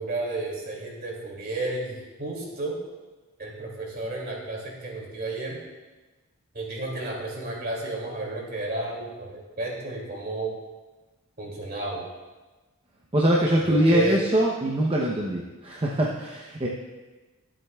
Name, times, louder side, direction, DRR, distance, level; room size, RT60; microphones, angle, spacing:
voice 1, 0.0-2.8 3.4-5.6 6.5-10.5 11.4-12.0 13.7-14.2, right 2 dB, 45° right, -2 dB, 2.5 m, -32 dB
voice 2, 13.1-16.7, right 1 dB, 25° right, -3 dB, 0.8 m, -23 dB
22.0 x 7.6 x 2.3 m, 1.2 s
head